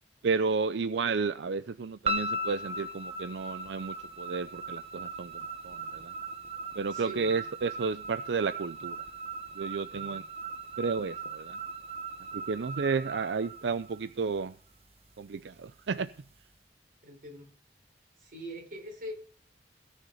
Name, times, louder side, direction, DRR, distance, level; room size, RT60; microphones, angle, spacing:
voice 1, 0.2-6.1 6.8-9.0 9.5-10.2 10.8-11.6 12.3-14.6 15.2-16.1, right 4 dB, 85° right, 0.5 m, -32 dB
sound 1, 2.1-14.4, right 2 dB, 35° right, 1.1 m, -38 dB
voice 2, 6.9-7.5 17.0-17.5 18.2-19.1, equal, 55° right, 4.6 m, -43 dB
16.5 x 6.6 x 5.4 m
head